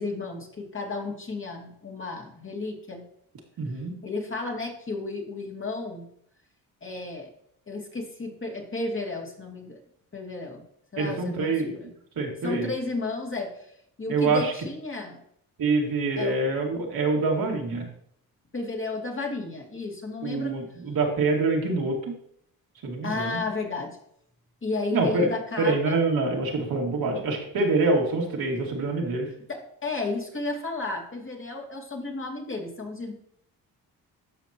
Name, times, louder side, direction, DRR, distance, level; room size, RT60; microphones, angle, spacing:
voice 1, 0.0-3.0 4.0-6.1 6.8-7.3 7.7-9.8 10.1-10.6 10.9-11.9 12.4-15.2 16.2-16.4 18.5-20.6 23.0-24.0 24.6-26.0 29.5-33.1, left 3 dB, 30° left, 0 dB, 2.5 m, -33 dB
voice 2, 3.6-4.0 11.0-11.8 12.2-12.7 14.1-14.5 15.6-17.9 20.2-22.1 22.8-23.4 24.9-25.3 25.6-29.3, right 3 dB, 65° right, -1 dB, 2.4 m, -25 dB
13.0 x 5.2 x 3.0 m, 0.68 s
cardioid pair, 80°, 38 cm